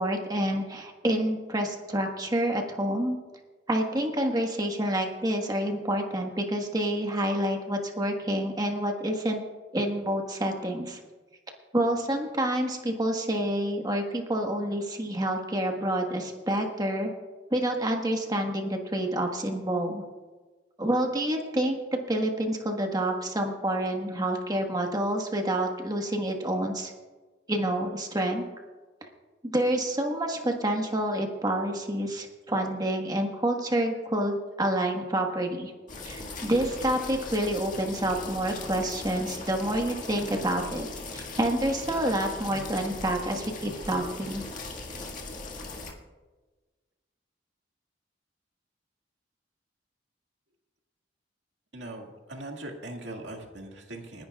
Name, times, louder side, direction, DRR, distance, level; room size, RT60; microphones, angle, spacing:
voice 1, 0.0-3.2 3.7-9.4 9.7-11.0 11.7-17.1 17.5-20.0 20.8-21.8 22.1-26.9 27.5-28.4 29.4-35.7 36.0-40.9 41.1-44.4, right 1 dB, 20° right, 2 dB, 1.4 m, -28 dB
sound 1, 35.9-45.9, left 2 dB, 45° left, 1.9 m, -39 dB
voice 2, 51.7-54.3, right 1 dB, 85° right, 1 dB, 2.0 m, -40 dB
30.0 x 10.5 x 2.4 m, 1.3 s
head